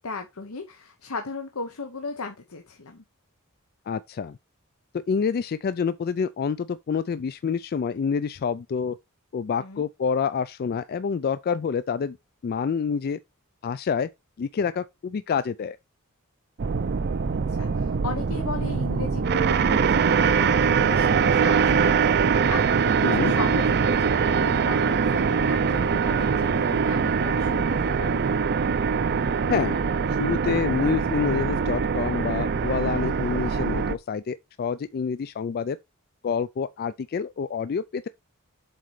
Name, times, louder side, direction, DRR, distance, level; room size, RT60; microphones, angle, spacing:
voice 1, 0.0-3.0 9.6-9.8 17.5-28.2, left 3 dB, 70° left, 1.0 m, -36 dB
voice 2, 3.9-4.4 4.9-9.0 9.3-12.2 12.4-13.2 13.6-14.1 14.4-15.8 23.0-23.3 29.5-29.8 30.1-35.8 36.2-38.1, left 6 dB, 45° left, 0.3 m, -27 dB
sound 1, 16.6-33.9, right 6 dB, 50° right, 0.5 m, -23 dB
7.7 x 4.3 x 4.8 m
head